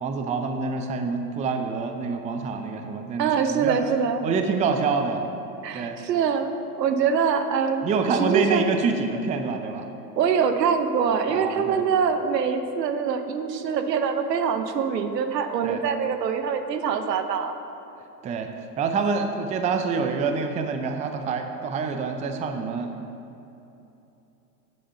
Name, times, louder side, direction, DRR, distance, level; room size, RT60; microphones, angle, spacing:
voice 1, 0.0-3.8 4.2-5.2 5.7-6.0 7.8-9.9 11.3-11.8 15.6-15.8 18.2-18.5 18.8-23.0, right 5 dB, 15° right, 5 dB, 0.5 m, -26 dB
voice 2, 3.2-4.2 5.6-8.7 10.2-17.5, right 6 dB, 80° right, 7 dB, 1.0 m, -24 dB
8.6 x 7.9 x 5.6 m, 2.9 s
hypercardioid pair, 110°, 49 cm